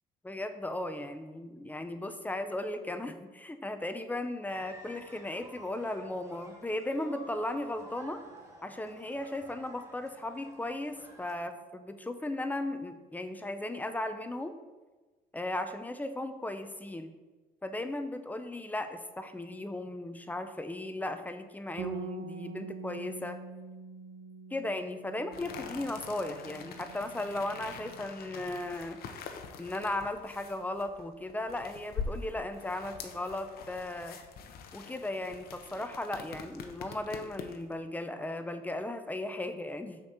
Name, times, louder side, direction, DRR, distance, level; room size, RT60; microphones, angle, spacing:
voice 1, 0.2-8.2 8.6-14.6 15.3-17.1 17.6-23.4 24.5-29.0 29.6-34.2 34.7-40.0, left 1 dB, 10° left, 8 dB, 0.6 m, -36 dB
sound 1, 4.5-11.3, right 1 dB, 15° right, 1.4 m, -52 dB
Bass guitar, 21.8-28.0, right 5 dB, 55° right, 0.5 m, -45 dB
sound 2, 25.3-37.7, left 5 dB, 65° left, 0.8 m, -44 dB
6.1 x 4.5 x 6.2 m, 1.3 s
cardioid pair, 110°, 17 cm